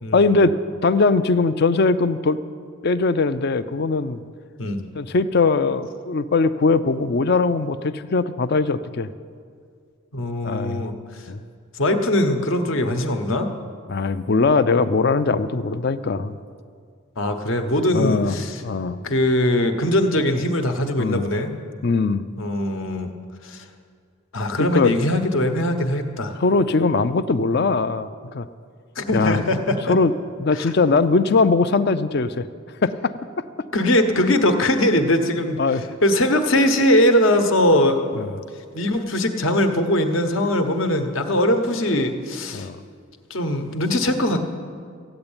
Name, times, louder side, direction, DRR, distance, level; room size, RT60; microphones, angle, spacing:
voice 1, 0.1-0.5 0.8-2.4 2.8-4.2 5.0-9.1 10.4-10.9 11.3-11.4 13.9-16.3 17.9-18.4 18.6-19.0 21.0-21.3 21.8-22.2 24.6-24.9 26.4-28.5 29.1-29.4 29.9-30.1 30.4-32.5 32.8-33.1 35.6-35.8 38.2-38.3 42.5-42.8, left 3 dB, 50° left, 13 dB, 0.4 m, -20 dB
voice 2, 10.1-10.9 11.7-13.5 17.2-18.6 19.0-21.5 22.4-23.1 23.4-23.6 24.3-26.4 29.0-30.0 30.5-30.7 33.7-38.2 38.7-42.7 43.3-44.4, left 1 dB, 65° left, 6 dB, 1.2 m, -21 dB
15.0 x 8.9 x 8.8 m, 2.1 s
head